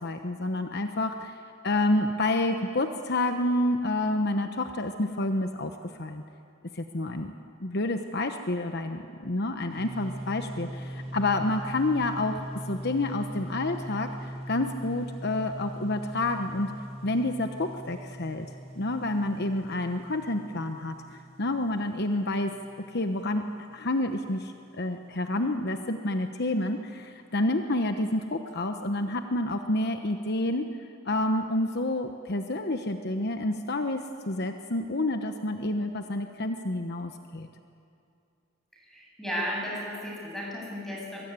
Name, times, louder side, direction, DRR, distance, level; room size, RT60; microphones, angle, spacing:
voice 1, 0.0-1.4 1.6-6.2 6.7-7.3 7.6-12.4 12.7-16.7 17.0-18.5 18.8-22.5 22.9-23.4 23.7-30.7 31.0-37.5, left 2 dB, 55° left, 6 dB, 1.1 m, -29 dB
sound 1, 9.7-23.2, right 1 dB, 35° right, 3.8 m, -41 dB
voice 2, 38.8-41.2, equal, ahead, -4 dB, 7.9 m, -34 dB
24.5 x 23.0 x 9.7 m, 2.5 s
head